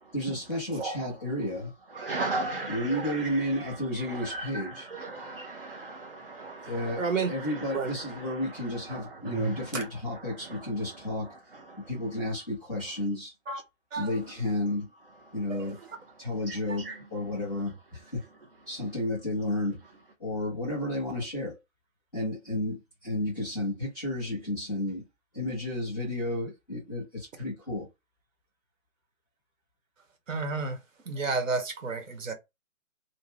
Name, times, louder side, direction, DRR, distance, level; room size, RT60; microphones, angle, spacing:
voice 1, 0.1-1.7 2.7-4.9 6.6-7.0 7.3-11.3 11.9-13.3 14.0-14.9 15.3-15.8 16.2-18.2 18.7-19.8 20.2-21.6 22.1-25.0 25.3-27.9, left 1 dB, ahead, 0.8 m, -32 dB
voice 2, 1.9-11.9 15.3-15.4 16.5-17.0, right 3 dB, 40° right, 0.5 m, -38 dB
voice 3, 7.0-7.3 7.7-7.9 9.7-9.8 13.5-13.6 13.9-14.1 15.6-15.7 16.7-16.8 30.3-30.8 31.0-32.3, right 4 dB, 65° right, 1.1 m, -30 dB
2.7 x 2.5 x 3.2 m
hypercardioid pair, 160°, 42 cm